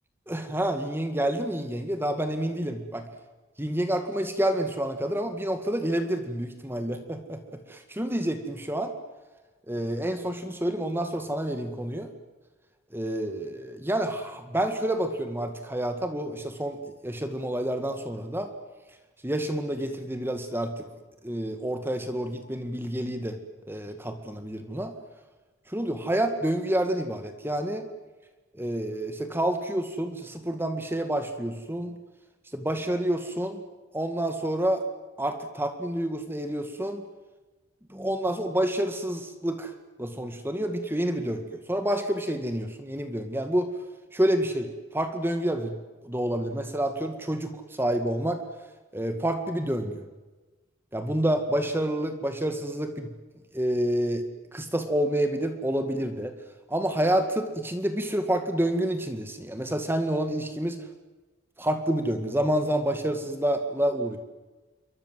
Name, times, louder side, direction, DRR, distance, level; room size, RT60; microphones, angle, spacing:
voice 1, 0.3-3.0 3.6-7.4 7.7-8.9 9.7-12.1 12.9-16.8 17.0-18.5 19.2-20.7 21.2-23.4 23.7-24.9 25.7-27.9 28.5-32.0 32.5-33.6 33.9-34.8 35.2-37.0 37.9-39.7 40.0-43.7 44.1-45.7 46.0-48.4 48.9-50.1 50.9-53.1 53.5-54.2 54.5-56.3 56.7-60.8 61.6-64.2, right 1 dB, 10° right, 7 dB, 2.0 m, -28 dB
28.0 x 24.0 x 7.7 m, 1.2 s
head